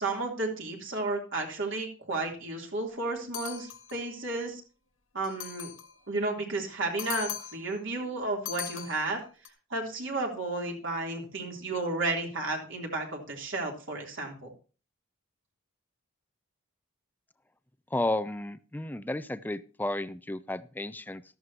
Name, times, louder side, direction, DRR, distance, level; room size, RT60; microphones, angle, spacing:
voice 1, 0.0-4.6 5.1-5.7 6.1-9.2 9.7-14.5, right 2 dB, 60° right, 0 dB, 3.4 m, -32 dB
sound 1, 3.3-4.1 5.2-6.0 7.0-7.8 8.5-9.5, left 11 dB, 70° left, 1.8 m, -40 dB
voice 2, 17.9-21.2, left 1 dB, 10° left, 13 dB, 0.5 m, -32 dB
14.0 x 12.5 x 2.9 m, 0.36 s
head